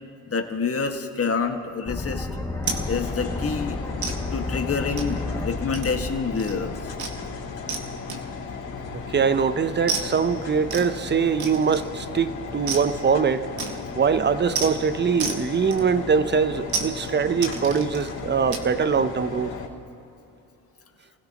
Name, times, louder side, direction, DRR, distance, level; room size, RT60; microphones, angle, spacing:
voice 1, 0.3-2.3 2.9-3.8 4.3-6.9, left 5 dB, 30° left, 5 dB, 1.8 m, -27 dB
sound 1, 1.9-7.8, left 2 dB, 10° left, 2.1 m, -32 dB
sound 2, 2.6-19.7, left 5 dB, 55° left, 4.0 m, -36 dB
sound 3, 2.6-2.8 3.2-3.4 4.0-4.2 5.0-5.2 5.7-6.1 6.3-6.6 7.0-7.2 7.7-8.5 9.9-10.1 10.7-10.9 11.4-11.9 12.7-12.9 13.6-13.9 14.5-14.7 15.2-15.4 15.7-16.2 16.7-16.9 17.4-18.1 18.5-18.7, right 5 dB, 50° right, 2.1 m, -31 dB
voice 2, 8.9-13.5 14.0-19.5, right 6 dB, 25° right, 13 dB, 0.8 m, -23 dB
29.5 x 16.5 x 3.0 m, 2.8 s
hypercardioid pair, 70°, 46 cm